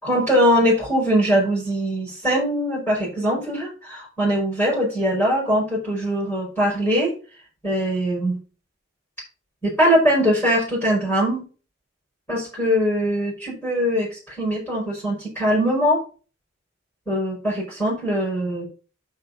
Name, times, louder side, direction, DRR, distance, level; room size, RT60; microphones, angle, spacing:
voice 1, 0.0-7.1 7.6-8.4 9.6-11.4 12.3-16.0 17.1-18.6, equal, 10° left, -4 dB, 5.2 m, -21 dB
6.8 x 6.7 x 5.3 m, 0.35 s
head